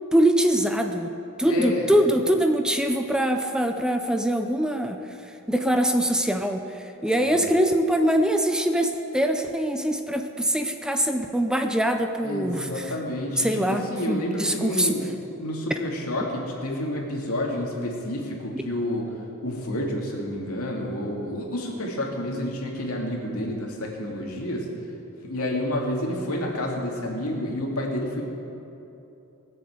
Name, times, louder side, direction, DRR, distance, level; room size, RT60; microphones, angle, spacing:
voice 1, 0.1-1.1 1.4-5.0 5.5-12.8 13.4-15.0, right 1 dB, 5° right, 5 dB, 0.5 m, -23 dB
voice 2, 1.5-2.0 7.0-7.4 12.2-15.1 15.4-19.1 19.4-24.7 25.2-28.2, left 1 dB, 75° left, -1 dB, 2.6 m, -29 dB
18.5 x 7.5 x 7.9 m, 3.0 s
head